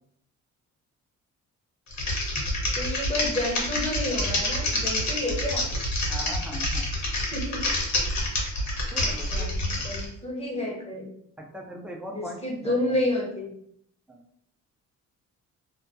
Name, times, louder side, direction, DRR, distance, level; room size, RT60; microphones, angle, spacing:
Typing, 1.9-10.0, left 1 dB, 65° left, 1.0 m, -27 dB
voice 1, 2.7-5.7 7.3-7.6 9.0-11.1 12.1-13.5, left 1 dB, 20° left, -2 dB, 0.8 m, -30 dB
voice 2, 6.0-6.9 8.9-9.5 9.7-9.9 11.4-12.4 12.6-12.9 14.1-14.2, equal, 5° right, 0 dB, 0.5 m, -39 dB
2.2 x 2.1 x 2.6 m, 0.69 s
cardioid pair, 90°, 30 cm